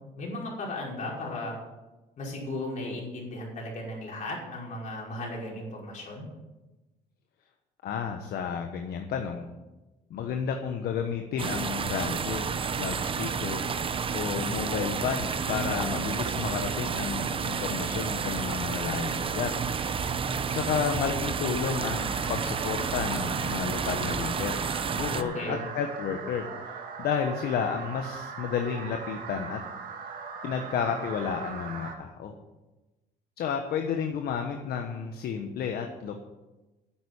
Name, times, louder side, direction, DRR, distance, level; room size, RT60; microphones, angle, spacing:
voice 1, 0.1-1.6 2.2-6.3 15.4-15.8 25.2-25.6, left 1 dB, 50° left, -3 dB, 5.5 m, -36 dB
voice 2, 7.8-9.5 10.1-12.5 12.8-13.6 14.1-19.5 20.5-24.6 24.9-29.6 30.4-32.4 33.4-36.2, left 7 dB, 65° left, 4 dB, 1.3 m, -31 dB
sound 1, 11.4-25.2, right 6 dB, 30° right, 0.8 m, -30 dB
sound 2, 21.7-32.0, right 5 dB, 55° right, 2.3 m, -40 dB
10.5 x 8.0 x 8.7 m, 1.1 s
cardioid pair, 110°, 17 cm